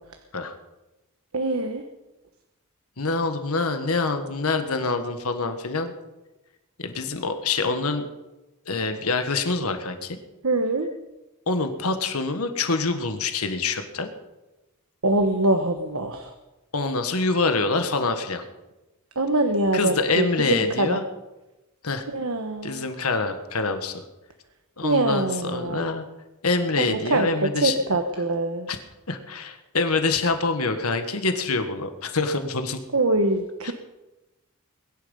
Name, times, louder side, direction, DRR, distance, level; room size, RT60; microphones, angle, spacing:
voice 1, 1.3-1.8 10.4-10.9 15.0-16.3 19.1-21.0 22.1-22.8 24.8-25.9 26.8-28.7 32.9-33.7, right 2 dB, 70° right, 6 dB, 1.2 m, -24 dB
voice 2, 3.0-5.9 6.8-8.1 8.7-10.2 11.5-14.1 16.7-18.4 19.7-21.0 21.8-22.0 22.6-24.0 24.8-26.1 26.4-27.7 28.7-28.8 29.1-32.8 33.6-33.7, left 3 dB, 80° left, 7 dB, 1.6 m, -25 dB
22.0 x 11.0 x 5.6 m, 1.0 s
head